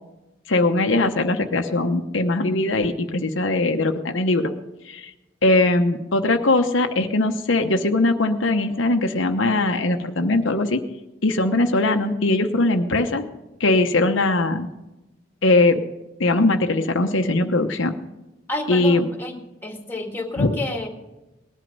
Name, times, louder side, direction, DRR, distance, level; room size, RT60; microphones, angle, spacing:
voice 1, 0.5-4.5 4.8-5.1 5.4-10.8 11.2-13.3 13.6-14.7 15.4-15.8 16.2-17.9 18.7-19.1 20.4-20.5, left 2 dB, 75° left, 5 dB, 0.9 m, -20 dB
voice 2, 18.5-19.4 19.6-20.9, left 2 dB, 10° left, 3 dB, 2.0 m, -29 dB
19.0 x 11.0 x 5.4 m, 1.0 s
head